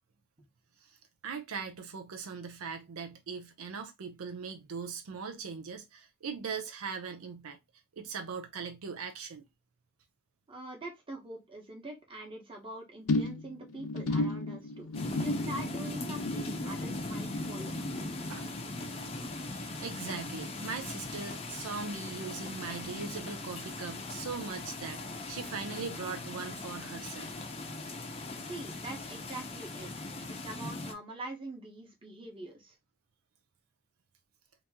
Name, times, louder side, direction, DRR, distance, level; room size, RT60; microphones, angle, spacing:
voice 1, 1.2-7.6 8.0-9.4 18.3-18.5 19.5-27.3, right 5 dB, 80° right, 0.5 m, -40 dB
voice 2, 10.5-17.8 28.5-29.9 30.4-32.7, right 1 dB, 25° right, 1.0 m, -44 dB
sound 1, 13.1-19.7 19.9-20.4 20.7-20.8, left 2 dB, 75° left, 0.6 m, -36 dB
sound 2, 14.9-30.9, left 2 dB, 30° left, 0.6 m, -39 dB
2.9 x 2.6 x 3.4 m
head